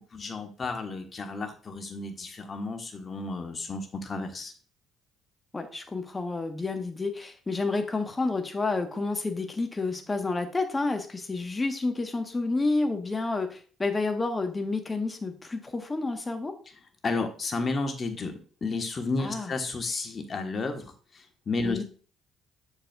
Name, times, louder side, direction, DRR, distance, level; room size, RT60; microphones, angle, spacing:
voice 1, 0.1-4.5 17.0-18.3 18.6-21.8, left 3 dB, 40° left, 5 dB, 1.4 m, -32 dB
voice 2, 5.5-16.5 19.2-19.5 21.6-21.8, left 3 dB, 25° left, 6 dB, 1.3 m, -30 dB
7.8 x 6.5 x 2.5 m, 0.40 s
hypercardioid pair, 50°, 0 cm